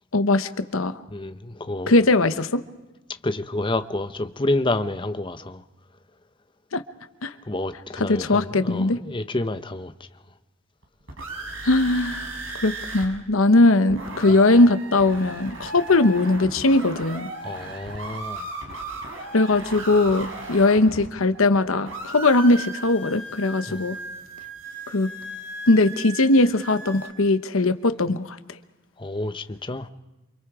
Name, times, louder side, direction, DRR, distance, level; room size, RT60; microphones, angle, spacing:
voice 1, 0.1-0.9 1.9-2.6 6.7-6.8 7.2-7.3 8.0-9.0 11.6-12.3 12.6-17.3 19.3-24.0 24.9-25.1 25.7-28.4, left 2 dB, 75° left, 1.0 m, -20 dB
voice 2, 1.1-1.9 3.2-5.6 7.5-9.9 17.4-18.5 23.7-23.8 29.0-29.9, left 2 dB, 25° left, 0.9 m, -29 dB
sound 1, 10.8-13.1 13.3-13.4 13.7-21.6 21.8-27.1, right 2 dB, 65° right, 5.7 m, -36 dB
28.5 x 26.0 x 4.9 m
head